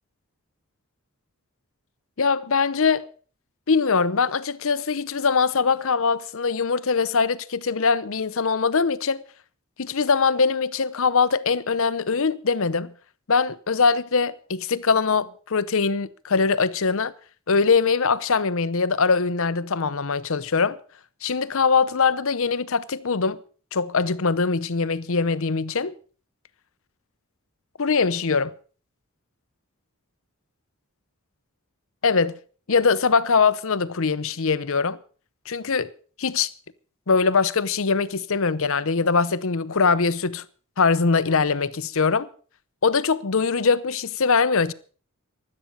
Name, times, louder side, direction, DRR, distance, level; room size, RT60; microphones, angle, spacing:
voice 1, 2.2-3.1 3.7-9.2 9.8-12.9 13.3-17.1 17.5-20.8 21.2-23.4 23.7-25.9 27.8-28.5 32.0-32.3 32.7-35.0 35.5-35.9 36.2-36.5 37.1-40.4 40.8-42.3 42.8-44.7, left 5 dB, 65° left, 0.8 m, -22 dB
16.0 x 12.0 x 5.4 m
head